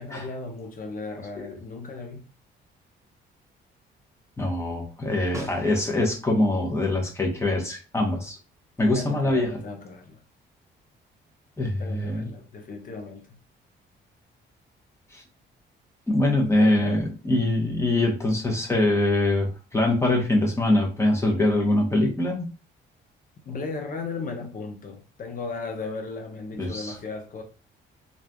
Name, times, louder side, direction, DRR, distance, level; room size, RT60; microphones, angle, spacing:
voice 1, 0.0-2.3 8.9-10.2 11.8-13.4 16.6-17.0 23.5-27.4, left 3 dB, 45° left, 0.8 m, -36 dB
voice 2, 4.4-8.4 8.8-9.6 11.6-12.3 15.1-15.2 16.1-22.5 26.6-26.9, left 1 dB, 15° left, 1.0 m, -23 dB
Snare drum, 5.3-6.3 10.7-10.8, right 3 dB, 15° right, 0.6 m, -40 dB
3.2 x 2.6 x 2.2 m
cardioid pair, 90°, 20 cm